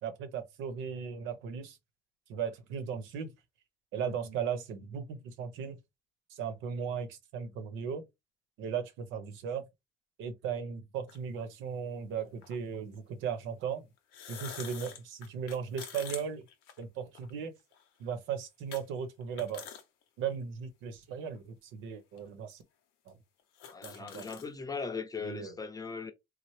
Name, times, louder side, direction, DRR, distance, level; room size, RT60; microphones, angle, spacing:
voice 1, 0.0-1.8 2.3-3.3 3.9-5.8 6.3-8.0 8.6-9.6 10.2-13.9 14.3-16.4 16.8-17.5 18.0-19.7 20.2-22.6 23.1-23.2 23.8-24.2 25.2-25.6, right 7 dB, 70° right, 0.8 m, -37 dB
sound 1, 11.1-11.2 12.4-12.6 14.0-17.3 17.7-17.8 18.7-18.8 19.2-19.8 20.3-20.4 21.3-21.4 22.2-22.3 22.5-22.6 23.1-23.2 23.4-24.5, left 8 dB, 75° left, 0.7 m, -46 dB
voice 2, 23.7-26.1, left 5 dB, 15° left, 0.7 m, -39 dB
3.1 x 2.0 x 3.1 m
supercardioid pair, 75°, 21 cm